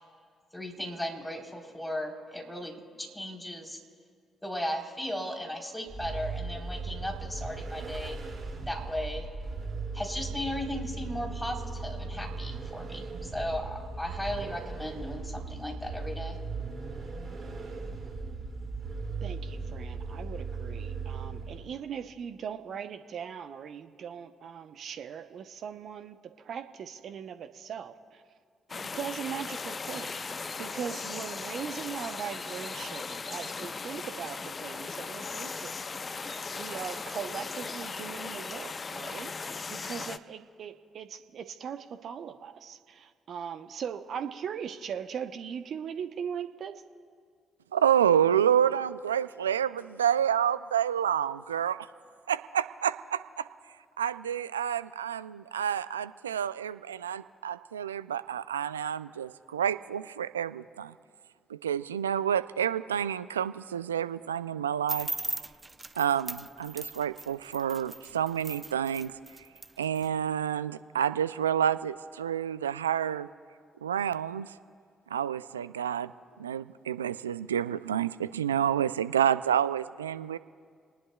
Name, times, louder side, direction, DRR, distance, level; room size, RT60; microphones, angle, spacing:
voice 1, 0.5-3.8 4.4-8.2 8.6-9.3 9.9-16.4, left 1 dB, 5° left, 1 dB, 3.8 m, -36 dB
Vehicle, 5.9-21.8, right 3 dB, 40° right, 2.5 m, -38 dB
voice 2, 19.2-26.2 26.4-28.2 28.7-46.7, right 7 dB, 60° right, 9 dB, 0.8 m, -40 dB
sound 1, 28.7-40.2, left 4 dB, 35° left, 0.7 m, -38 dB
voice 3, 47.7-51.8 52.3-53.5 54.0-60.9 61.5-65.1 66.0-69.1 69.8-73.3 73.8-74.5 75.1-76.1 76.4-80.4, right 9 dB, 90° right, 16 dB, 0.3 m, -29 dB
sound 2, 64.9-70.1, right 3 dB, 25° right, 0.7 m, -38 dB
28.5 x 19.5 x 2.3 m, 2.1 s
hypercardioid pair, 45°, 0 cm